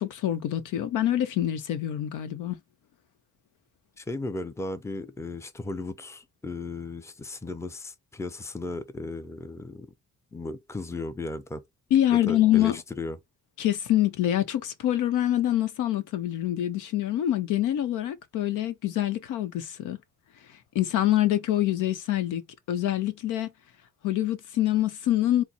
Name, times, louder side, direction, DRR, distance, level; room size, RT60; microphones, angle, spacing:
voice 1, 0.0-2.6 11.9-12.8 13.6-20.0 20.7-22.4 22.7-23.5 24.0-25.4, left 12 dB, 85° left, 0.8 m, -25 dB
voice 2, 4.0-9.9 10.3-11.6 12.1-13.2, left 2 dB, 10° left, 0.6 m, -36 dB
4.2 x 2.1 x 4.0 m
cardioid pair, 90°, 30 cm